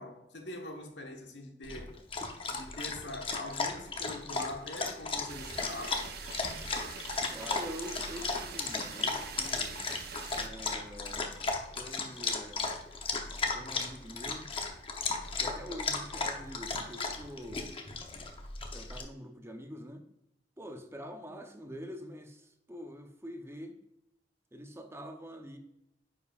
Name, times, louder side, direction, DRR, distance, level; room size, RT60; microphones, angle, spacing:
voice 1, 0.0-2.0 2.5-6.1, left 2 dB, 85° left, 1.2 m, -43 dB
Dog, 1.6-19.0, left 4 dB, 30° left, 0.8 m, -35 dB
sound 1, 5.3-10.5, right 6 dB, 60° right, 0.7 m, -44 dB
voice 2, 7.3-9.8 10.3-12.7 13.5-14.5 15.3-17.7 18.7-20.0 20.6-23.8 24.5-25.6, equal, 15° right, 0.7 m, -45 dB
9.5 x 5.2 x 2.4 m
head